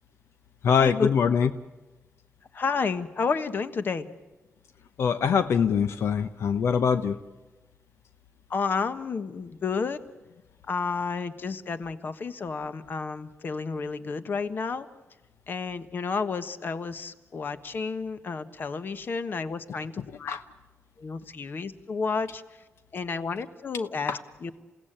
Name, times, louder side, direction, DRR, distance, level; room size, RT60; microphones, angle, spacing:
voice 1, 0.6-1.5 5.0-7.2 20.3-20.4 24.1-24.2, left 6 dB, 85° left, 11 dB, 0.8 m, -23 dB
voice 2, 2.5-4.1 8.5-10.0 10.7-14.9 15.5-20.4 21.0-22.4 22.9-24.6, left 5 dB, 50° left, 11 dB, 1.3 m, -31 dB
29.0 x 17.0 x 9.0 m, 1.2 s
wide cardioid pair, 115°, 4 cm